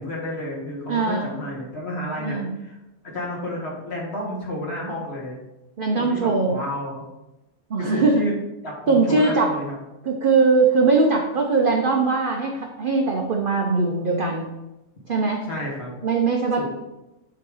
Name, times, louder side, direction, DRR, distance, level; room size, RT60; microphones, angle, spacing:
voice 1, 0.0-2.8 3.0-5.4 5.9-7.1 7.8-8.3 8.6-9.8 15.5-15.9 16.6-16.7, left 1 dB, 40° left, -4 dB, 2.1 m, -31 dB
voice 2, 0.9-1.3 2.2-2.5 5.8-6.5 7.7-8.2 8.9-9.5 10.0-14.5 15.1-15.4 16.0-16.7, right 4 dB, 50° right, 1 dB, 0.6 m, -20 dB
7.3 x 3.8 x 4.8 m, 0.95 s
omnidirectional pair, 1.7 m